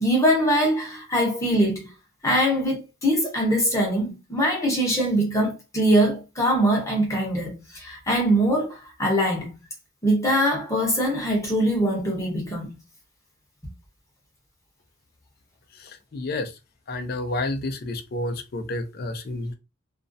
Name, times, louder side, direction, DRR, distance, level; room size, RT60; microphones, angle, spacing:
voice 1, 0.0-1.9 2.2-9.5 10.0-12.7, equal, 15° left, 0.9 m, -22 dB
voice 2, 16.1-16.5 16.9-19.5, left 2 dB, 50° left, 0.4 m, -29 dB
2.4 x 2.0 x 2.6 m
head